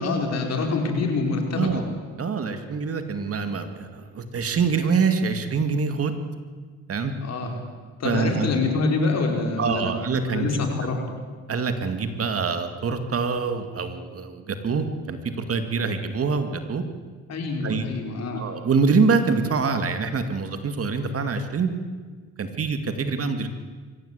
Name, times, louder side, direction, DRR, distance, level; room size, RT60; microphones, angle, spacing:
voice 1, 0.0-1.8 7.2-7.5 8.0-9.9 10.3-11.0 17.3-18.4, left 3 dB, 60° left, 2 dB, 4.8 m, -25 dB
voice 2, 2.2-6.2 6.9-7.1 8.0-8.5 9.6-10.9 11.5-16.8 17.6-17.9 18.4-21.7 22.4-23.5, right 5 dB, 50° right, 8 dB, 2.3 m, -25 dB
23.5 x 16.0 x 8.3 m, 1.5 s
cardioid pair, 90°, 30 cm